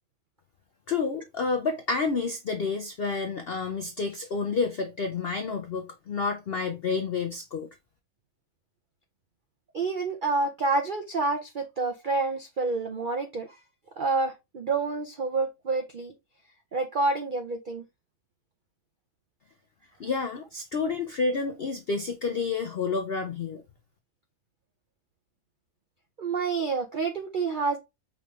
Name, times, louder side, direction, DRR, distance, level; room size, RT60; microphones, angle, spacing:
voice 1, 0.9-7.7 20.0-23.6, left 4 dB, 70° left, 0.5 m, -29 dB
voice 2, 9.7-13.6 14.0-16.1 16.7-17.8 26.2-27.8, right 3 dB, 70° right, 0.4 m, -28 dB
5.2 x 3.4 x 3.0 m
omnidirectional pair, 1.7 m